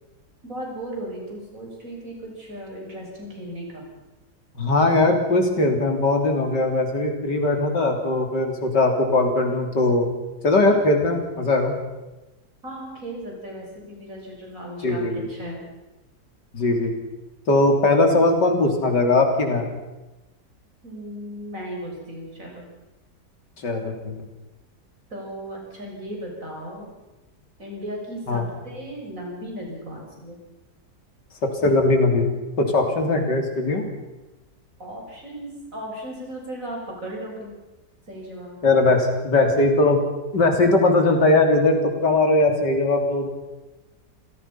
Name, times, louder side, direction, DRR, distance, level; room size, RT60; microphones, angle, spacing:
voice 1, 0.4-3.8 12.6-15.0 15.3-15.6 20.8-22.6 25.1-26.9 27.6-30.4 34.8-37.5 38.1-38.6, right 1 dB, 50° right, -1 dB, 7.0 m, -36 dB
voice 2, 4.6-10.1 10.4-11.7 14.8-15.3 16.5-16.9 17.5-19.6 23.6-24.3 28.3-28.4 31.6-32.3 32.6-33.9 38.6-40.0 40.3-41.8 42.0-43.3, left 2 dB, 90° left, 4 dB, 3.8 m, -20 dB
28.5 x 17.0 x 5.8 m, 1.1 s
omnidirectional pair, 1.8 m